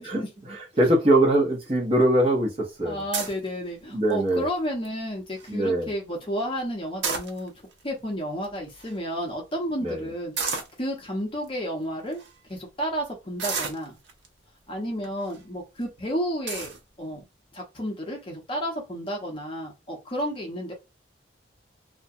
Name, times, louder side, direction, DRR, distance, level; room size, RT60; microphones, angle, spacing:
voice 1, 0.5-3.0 3.9-4.4 5.5-5.9 9.8-10.1, right 1 dB, 30° right, 0.8 m, -22 dB
voice 2, 2.8-7.5 7.8-12.2 12.5-14.0 14.7-17.2 17.5-20.7, equal, 30° left, 0.7 m, -32 dB
sound 1, 3.1-3.5 4.1-4.4 4.8-4.9 5.2-5.5 6.8-7.7 8.4-8.5 8.7-8.9 10.4-10.8 11.5-11.6 12.1-12.3 13.4-14.3 15.0-15.4 15.8-15.9 16.5-16.8, right 5 dB, 70° right, 0.6 m, -31 dB
2.4 x 2.1 x 2.6 m
head